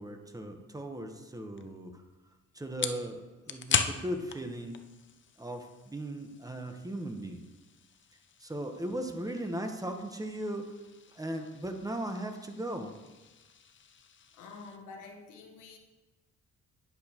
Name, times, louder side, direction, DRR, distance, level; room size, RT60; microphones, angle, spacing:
voice 1, 0.0-2.0 2.5-4.8 5.4-7.4 8.4-10.7 11.1-12.9, right 1 dB, 10° right, 5 dB, 0.9 m, -37 dB
sound 1, 1.6-14.8, left 7 dB, 40° left, 0.6 m, -40 dB
voice 2, 14.3-15.8, left 4 dB, 90° left, 3 dB, 1.2 m, -48 dB
10.0 x 6.8 x 2.9 m, 1.2 s
cardioid pair, 90°, 30 cm